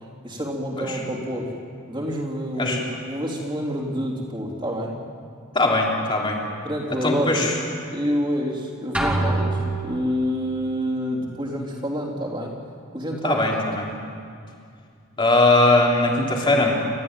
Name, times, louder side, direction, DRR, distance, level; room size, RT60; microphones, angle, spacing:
voice 1, 0.2-1.5 1.9-4.9 6.6-7.5 7.9-12.5 12.9-13.6, equal, 20° right, -3 dB, 3.8 m, -27 dB
voice 2, 5.5-6.4 7.0-7.5 13.2-13.9 15.2-16.7, left 2 dB, 25° left, -1 dB, 3.2 m, -20 dB
sound 1, 8.9-10.4, right 2 dB, 5° right, 2.7 m, -25 dB
29.5 x 14.0 x 9.2 m, 2.3 s
head